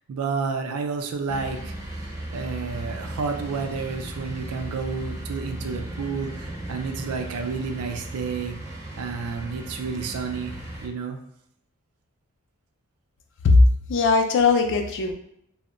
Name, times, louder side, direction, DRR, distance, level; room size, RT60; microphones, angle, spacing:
voice 1, 0.1-1.7 2.3-8.5 9.0-10.5 10.8-11.2, right 5 dB, 80° right, 5 dB, 0.4 m, -30 dB
sound 1, 1.3-10.9, right 1 dB, 15° right, 0.5 m, -36 dB
voice 2, 13.9-15.1, left 4 dB, 55° left, 5 dB, 0.4 m, -18 dB
2.1 x 2.0 x 3.7 m, 0.75 s
head